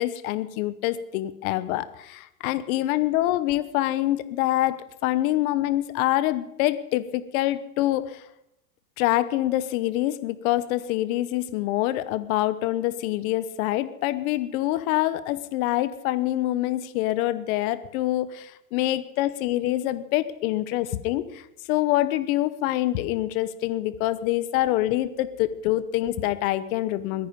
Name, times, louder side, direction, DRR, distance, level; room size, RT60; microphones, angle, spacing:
voice 1, 0.0-8.2 9.0-27.3, left 15 dB, 65° left, 14 dB, 1.2 m, -25 dB
22.0 x 10.5 x 5.2 m, 0.82 s
supercardioid pair, 125°, 46 cm